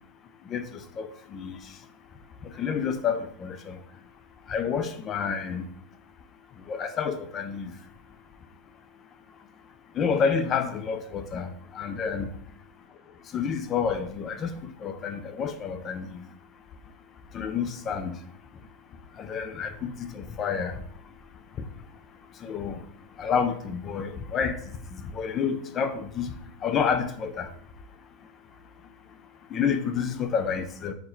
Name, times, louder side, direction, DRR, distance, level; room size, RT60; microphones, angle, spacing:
voice 1, 1.0-1.6 2.6-3.8 4.5-5.6 6.7-7.7 10.0-12.3 13.3-14.5 14.8-16.2 17.3-18.1 19.2-20.8 22.4-22.8 23.2-24.6 24.9-26.3 26.6-27.5 29.5-30.9, left 6 dB, 20° left, 8 dB, 0.3 m, -29 dB
4.4 x 2.2 x 4.3 m, 0.62 s
supercardioid pair, 170°, 0 cm